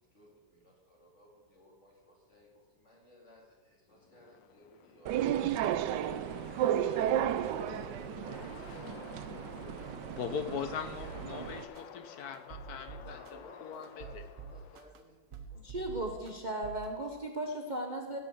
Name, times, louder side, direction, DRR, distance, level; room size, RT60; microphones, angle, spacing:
voice 1, 0.0-5.8 6.1-6.4 6.7-9.5 10.3-10.8 13.0-16.0, left 1 dB, 40° left, -3 dB, 2.8 m, -58 dB
sound 1, 3.9-14.9, left 8 dB, 80° left, 1.4 m, -50 dB
sound 2, 5.1-11.6, right 11 dB, 75° right, 1.1 m, -33 dB
voice 2, 10.2-13.2 13.6-14.2, left 7 dB, 60° left, 9 dB, 1.2 m, -40 dB
sound 3, 11.0-11.2 11.7-11.8 12.3-13.3 13.8-15.0 15.3-16.3 16.6-16.9, right 7 dB, 50° right, 1.2 m, -46 dB
voice 3, 15.6-18.2, right 1 dB, 35° right, 2 dB, 0.9 m, -36 dB
16.5 x 6.2 x 6.3 m, 1.4 s
omnidirectional pair, 2.0 m